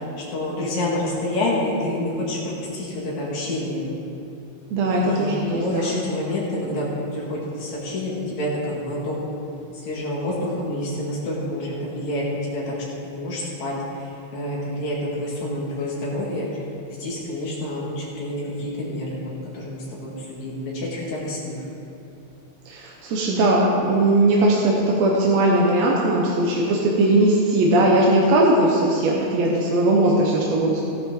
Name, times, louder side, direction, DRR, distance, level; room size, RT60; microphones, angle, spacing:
voice 1, 0.0-3.9 4.8-9.2 9.7-12.2 12.5-12.7 13.0-16.5 16.9-21.6, left 1 dB, 75° left, -5 dB, 3.3 m, -28 dB
voice 2, 4.7-6.0 22.7-30.9, right 1 dB, 70° right, -3 dB, 2.2 m, -19 dB
15.0 x 10.5 x 3.8 m, 2.8 s
omnidirectional pair, 3.3 m